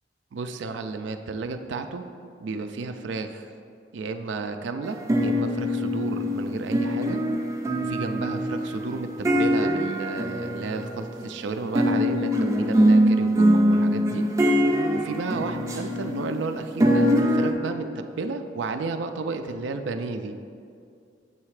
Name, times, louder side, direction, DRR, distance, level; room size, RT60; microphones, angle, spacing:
voice 1, 0.3-2.1 2.4-3.5 3.9-7.2 7.8-14.3 14.9-17.8 18.2-20.3, right 4 dB, 75° right, 7 dB, 0.4 m, -32 dB
sound 1, 4.9-11.2 11.8-17.5, equal, 15° right, 0.5 m, -23 dB
7.6 x 3.2 x 4.8 m, 2.4 s
head